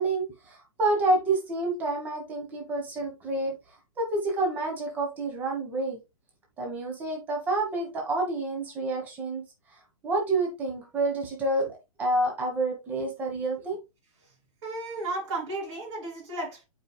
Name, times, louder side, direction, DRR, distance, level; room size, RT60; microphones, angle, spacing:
voice 1, 0.0-3.5 4.0-6.0 6.6-9.4 10.0-13.8, right 2 dB, 10° right, 1.3 m, -28 dB
voice 2, 14.6-16.6, right 2 dB, 50° right, 3.5 m, -34 dB
10.5 x 4.7 x 2.3 m
hypercardioid pair, 175°, 18 cm